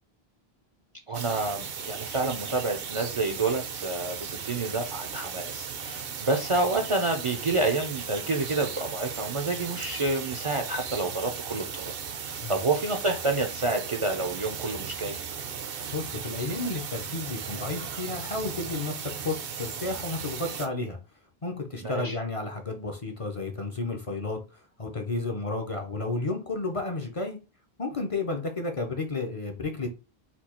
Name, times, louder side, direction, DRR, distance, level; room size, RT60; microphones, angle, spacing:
voice 1, 1.1-11.9 12.2-15.2 21.8-22.2, right 3 dB, 40° right, 0.5 m, -29 dB
sound 1, 1.1-20.7, right 7 dB, 65° right, 0.8 m, -36 dB
voice 2, 15.9-21.0 21.4-27.4 27.8-29.9, left 3 dB, 40° left, 0.6 m, -32 dB
4.4 x 2.3 x 4.2 m
omnidirectional pair, 1.1 m